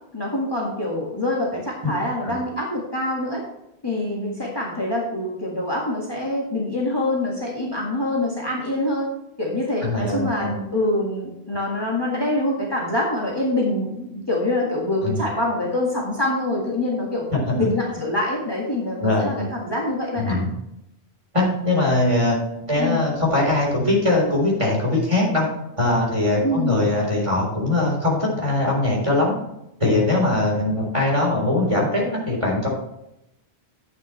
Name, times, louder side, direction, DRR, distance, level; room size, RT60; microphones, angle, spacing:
voice 1, 0.1-3.4 3.8-9.1 9.4-17.3 17.6-20.4 22.8-23.0 26.4-26.7, left 1 dB, 20° left, -3 dB, 2.0 m, -25 dB
voice 2, 9.8-10.5 15.0-15.2 17.3-17.7 19.0-19.5 20.2-20.5 21.3-22.4 22.7-25.5 25.8-29.3 29.8-32.7, left 2 dB, 30° right, -2 dB, 3.9 m, -21 dB
11.0 x 8.9 x 3.2 m, 0.84 s
omnidirectional pair, 1.1 m